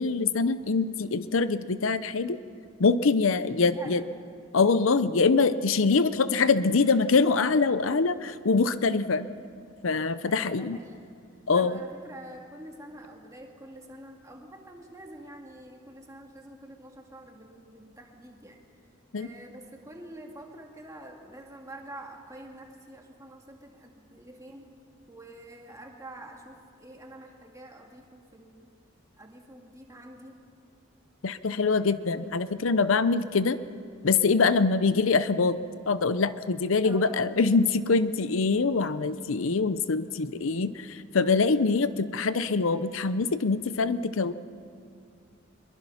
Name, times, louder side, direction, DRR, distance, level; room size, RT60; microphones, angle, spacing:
voice 1, 0.0-2.4 2.8-4.0 4.5-9.3 9.8-10.8 11.5-11.8 19.1-19.3 31.2-33.6 34.0-35.6 35.9-44.3, left 4 dB, 85° left, 14 dB, 0.7 m, -24 dB
voice 2, 3.3-4.1 5.8-6.1 8.8-9.0 10.2-11.2 11.5-18.6 19.1-24.7 25.1-28.7 29.1-30.4 34.6-34.8 36.8-37.3 41.6-41.9, right 1 dB, 15° right, 1 dB, 2.2 m, -47 dB
23.0 x 22.5 x 5.7 m, 2.3 s
head